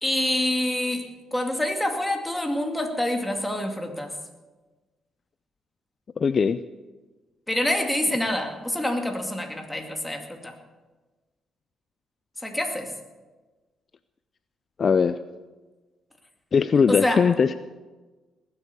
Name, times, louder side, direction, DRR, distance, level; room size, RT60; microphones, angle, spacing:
voice 1, 0.0-4.2 7.5-10.6 12.4-12.9 16.9-17.3, left 1 dB, 10° left, 3 dB, 2.3 m, -26 dB
voice 2, 6.2-6.6 14.8-15.2 16.5-17.5, left 6 dB, 45° left, 13 dB, 0.4 m, -20 dB
19.5 x 8.1 x 6.9 m, 1.2 s
cardioid pair, 90°, 0 cm